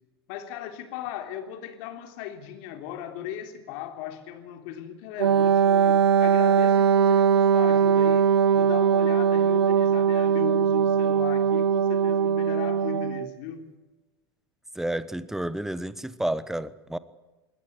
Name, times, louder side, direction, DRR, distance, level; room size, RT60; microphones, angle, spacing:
voice 1, 0.3-13.7, left 10 dB, 55° left, 7 dB, 3.4 m, -37 dB
Wind instrument woodwind instrument, 5.2-13.3, right 7 dB, 85° right, 1.2 m, -21 dB
voice 2, 14.7-17.0, right 1 dB, 5° right, 16 dB, 1.2 m, -30 dB
22.0 x 18.0 x 8.1 m, 1.1 s
hypercardioid pair, 105°, 13 cm